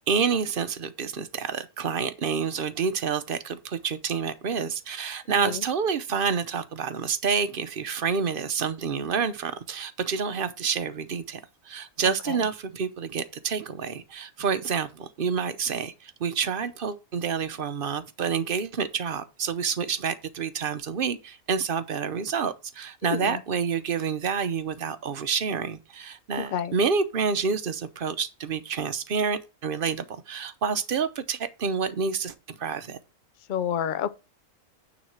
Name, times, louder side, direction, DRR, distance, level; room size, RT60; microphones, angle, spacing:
voice 1, 0.1-11.4 11.7-33.0, right 6 dB, 50° right, 0.8 m, -28 dB
voice 2, 5.3-5.7 12.0-12.4 23.1-23.4 26.4-26.7 33.5-34.1, left 9 dB, 55° left, 0.5 m, -29 dB
9.3 x 4.0 x 5.9 m
omnidirectional pair, 1.4 m